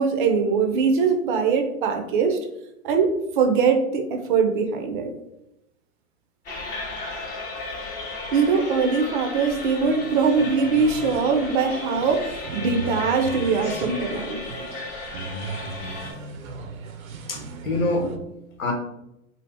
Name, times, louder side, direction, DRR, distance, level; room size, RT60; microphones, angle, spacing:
voice 1, 0.0-2.4 2.8-5.1 8.3-14.4, right 5 dB, 40° right, 5 dB, 0.4 m, -22 dB
sound 1, 6.5-16.1, left 2 dB, 20° left, 0.5 m, -35 dB
sound 2, 9.8-18.2, right 4 dB, 85° right, 0.6 m, -38 dB
voice 2, 14.3-14.6 15.9-16.1 17.3-18.3 18.6-18.7, left 2 dB, 85° left, 2 dB, 1.0 m, -28 dB
2.7 x 2.5 x 3.2 m, 0.86 s
hypercardioid pair, 120°, 41 cm